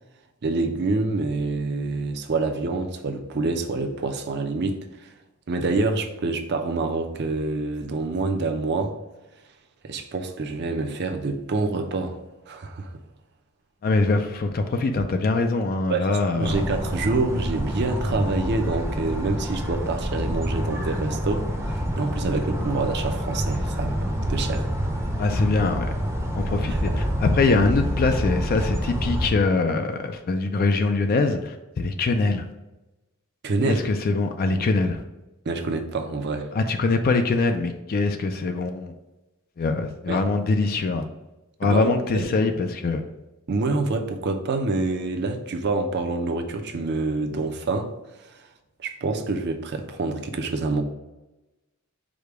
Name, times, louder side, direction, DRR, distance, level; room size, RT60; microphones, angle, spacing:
voice 1, 0.4-4.8 5.5-9.0 9.8-12.2 12.5-12.9 15.9-24.7 26.7-27.0 33.4-33.8 35.5-36.5 40.1-40.2 41.6-42.3 43.5-47.9 48.8-50.8, right 3 dB, 55° right, 6 dB, 0.5 m, -27 dB
voice 2, 13.8-16.6 25.2-25.9 26.3-32.4 33.6-35.0 36.5-38.9 39.6-41.0 41.6-43.1, left 3 dB, 45° left, 6 dB, 0.4 m, -23 dB
sound 1, 16.4-29.3, equal, 15° right, 0.6 m, -27 dB
4.9 x 2.2 x 4.7 m, 1.0 s
head